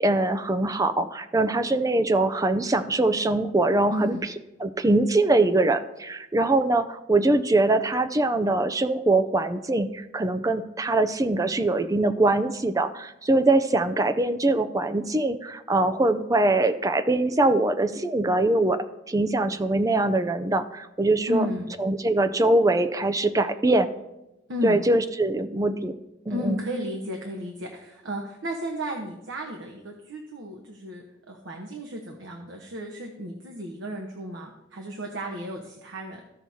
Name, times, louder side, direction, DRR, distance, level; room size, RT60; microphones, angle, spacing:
voice 1, 0.0-4.2 4.6-18.8 19.1-21.5 21.8-23.9 24.6-26.0 26.3-26.6, right 2 dB, 15° right, 9 dB, 0.4 m, -23 dB
voice 2, 3.9-4.2 21.3-21.7 24.5-24.8 26.3-36.2, equal, 75° right, 1 dB, 1.0 m, -33 dB
15.5 x 5.9 x 2.8 m, 0.93 s
head